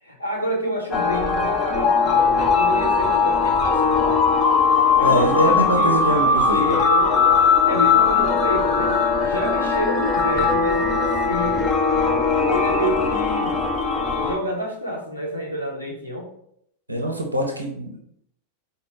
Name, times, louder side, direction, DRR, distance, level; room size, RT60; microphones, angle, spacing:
voice 1, 0.0-4.4 4.9-7.2 7.7-11.7 12.5-13.6 14.2-16.3, equal, 85° left, -3 dB, 0.9 m, -29 dB
sound 1, 0.9-14.4, left 5 dB, 25° left, 0.6 m, -19 dB
voice 2, 5.0-6.8 16.9-18.0, right 1 dB, 80° right, 1 dB, 0.6 m, -23 dB
4.8 x 2.2 x 3.2 m, 0.71 s
figure-of-eight pair, 90°, 0 cm